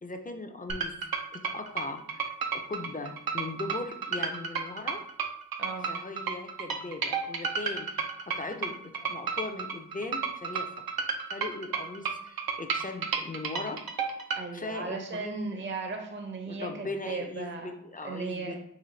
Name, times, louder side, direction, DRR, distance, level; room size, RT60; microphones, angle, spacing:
voice 1, 0.0-1.0 1.3-5.0 5.9-10.7 11.3-13.9 14.5-15.6 16.5-18.6, left 3 dB, 25° left, 6 dB, 0.4 m, -39 dB
sound 1, 0.7-14.4, right 5 dB, 90° right, 0.5 m, -32 dB
voice 2, 5.6-5.9 14.4-17.7 18.0-18.6, right 4 dB, 35° right, 3 dB, 0.5 m, -36 dB
3.9 x 2.5 x 3.1 m, 0.70 s
wide cardioid pair, 60°, 35 cm